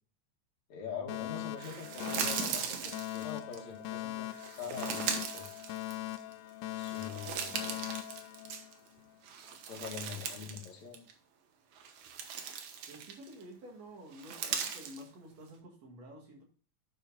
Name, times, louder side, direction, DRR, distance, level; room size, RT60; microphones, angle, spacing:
voice 1, 0.7-5.6 6.8-7.8 9.7-11.0, left 6 dB, 70° left, 2.9 m, -44 dB
Alarm, 1.1-9.1, left 16 dB, 85° left, 2.0 m, -41 dB
sound 1, 1.6-3.6 4.3-6.3 6.7-8.9 9.2-10.7 10.9-11.1 11.7-13.4 14.1-15.0, right 7 dB, 75° right, 2.5 m, -39 dB
voice 2, 12.9-16.4, equal, 60° right, 3.3 m, -50 dB
11.0 x 5.1 x 4.0 m
omnidirectional pair, 3.4 m